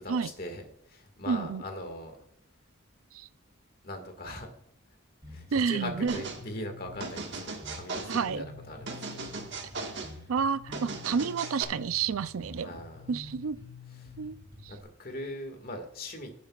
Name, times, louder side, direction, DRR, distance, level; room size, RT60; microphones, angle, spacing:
voice 1, 0.0-2.2 3.8-4.5 5.3-9.3 9.8-10.3 12.6-13.2 13.9-14.1 14.7-16.5, left 1 dB, 45° left, 4 dB, 1.9 m, -41 dB
voice 2, 1.3-1.6 3.1-3.3 5.5-6.2 8.1-8.4 10.3-12.7 13.1-13.6 14.2-14.4 14.6-14.7, right 6 dB, 85° right, 15 dB, 0.5 m, -29 dB
Bass guitar, 5.2-14.8, left 3 dB, 20° right, 3.4 m, -47 dB
sound 1, 6.1-6.4 7.0-8.3 8.9-10.1 10.7-11.6, right 3 dB, 55° right, 1.6 m, -38 dB
17.0 x 8.3 x 2.4 m, 0.72 s
head